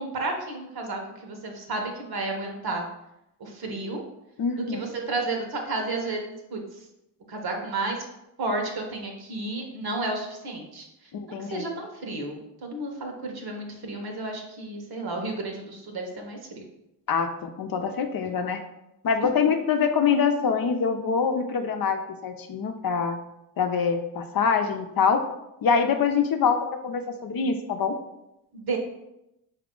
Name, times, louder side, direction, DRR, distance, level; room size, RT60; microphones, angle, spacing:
voice 1, 0.0-2.9 3.4-4.0 4.7-6.6 7.3-8.0 8.4-10.9 11.3-16.6 19.2-19.3 28.5-28.8, right 2 dB, 60° right, 2 dB, 1.2 m, -32 dB
voice 2, 4.4-4.9 11.1-11.7 17.1-18.6 19.0-23.2 23.6-25.2 25.6-28.0, left 6 dB, 55° left, 6 dB, 0.6 m, -25 dB
4.9 x 2.8 x 3.7 m, 0.87 s
supercardioid pair, 60°, 42 cm